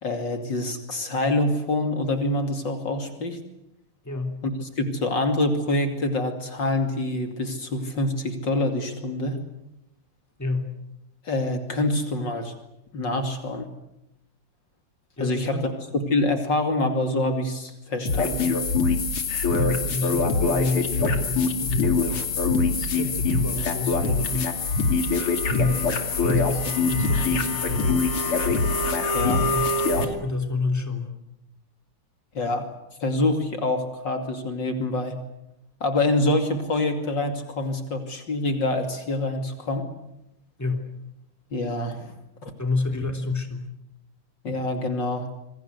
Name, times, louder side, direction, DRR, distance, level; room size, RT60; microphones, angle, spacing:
voice 1, 0.0-3.4 4.4-9.4 11.2-12.5 12.9-13.7 15.2-15.6 15.9-18.5 29.1-29.4 32.3-32.7 33.0-35.2 35.8-39.8 41.5-42.1 42.4-42.5 44.4-45.3, left 2 dB, 55° left, 6 dB, 3.2 m, -26 dB
voice 2, 4.0-4.4 10.4-10.7 15.2-15.7 19.5-22.2 22.8-24.5 25.5-28.1 29.4-29.6 30.0-31.1 40.6-40.8 42.6-43.6, left 3 dB, 5° left, 4 dB, 3.0 m, -29 dB
sound 1, 18.1-30.0, left 3 dB, 75° left, 3.5 m, -23 dB
27.0 x 24.0 x 8.1 m, 0.85 s
omnidirectional pair, 2.4 m